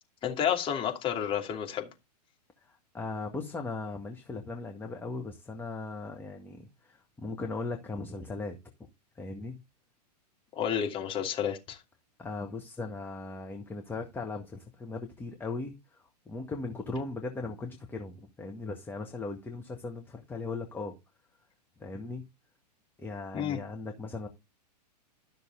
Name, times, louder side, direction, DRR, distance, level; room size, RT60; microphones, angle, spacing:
voice 1, 0.2-1.9 10.5-11.8 23.3-23.6, left 9 dB, 25° left, 2.8 m, -30 dB
voice 2, 2.6-8.6 9.2-9.6 12.2-15.7 16.3-20.9 21.8-22.2 23.0-24.3, left 3 dB, 10° left, 1.8 m, -38 dB
13.0 x 6.6 x 4.0 m
figure-of-eight pair, 105°, 21 cm